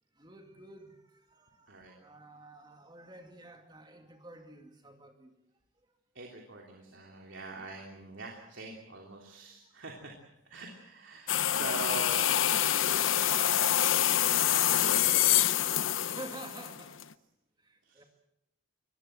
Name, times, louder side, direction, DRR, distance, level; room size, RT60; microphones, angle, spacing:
voice 1, 0.2-5.3 9.0-9.1 11.4-11.6 14.5-14.7 16.0-17.0 17.6-18.0, right 1 dB, 20° right, 5 dB, 2.4 m, -49 dB
voice 2, 6.1-10.1 10.4-12.4 13.1-13.6 14.1-16.1 17.8-18.0, right 3 dB, 65° right, 0 dB, 3.2 m, -44 dB
sound 1, 11.3-17.0, left 11 dB, 70° left, 0.8 m, -26 dB
24.5 x 20.0 x 7.7 m, 0.82 s
head